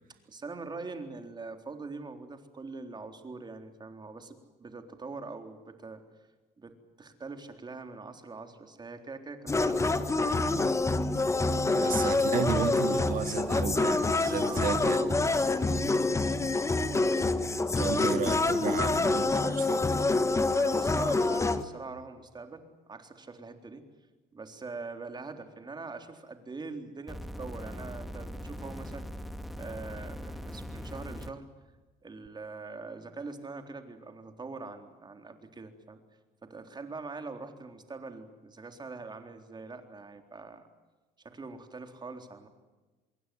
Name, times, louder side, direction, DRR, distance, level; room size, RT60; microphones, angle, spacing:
voice 1, 0.3-6.0 6.6-11.1 11.4-11.9 14.4-15.8 20.5-23.9 24.3-29.1 29.6-31.5 32.0-36.0 36.4-40.7 41.2-42.5, right 3 dB, 25° right, 3.8 m, -43 dB
sound 1, 9.5-21.6, left 3 dB, 15° left, 1.6 m, -26 dB
voice 2, 11.7-15.0 17.8-19.8, right 8 dB, 55° right, 2.2 m, -33 dB
sound 2, 27.1-31.3 32.3-32.4, equal, ahead, 2.3 m, -40 dB
26.0 x 22.5 x 7.9 m
cardioid pair, 110°, 17 cm